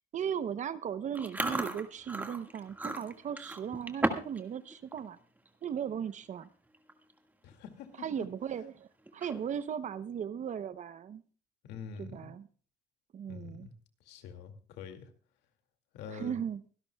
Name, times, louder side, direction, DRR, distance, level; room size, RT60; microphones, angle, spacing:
voice 1, 0.1-5.2 5.6-6.5 8.0-11.2 12.0-12.5 13.1-13.7 16.1-16.6, right 8 dB, 45° right, 0.8 m, -37 dB
Chewing mastication, 1.1-4.4 4.7-5.0 5.5-5.7 6.4-6.5 6.7-7.1 7.5-7.6 9.1-9.6, right 2 dB, 10° right, 1.7 m, -35 dB
voice 2, 7.4-8.3 11.6-12.3 13.3-13.7 14.0-15.1 15.9-16.4, left 6 dB, 85° left, 2.3 m, -46 dB
24.5 x 12.0 x 2.3 m
cardioid pair, 110°, 17 cm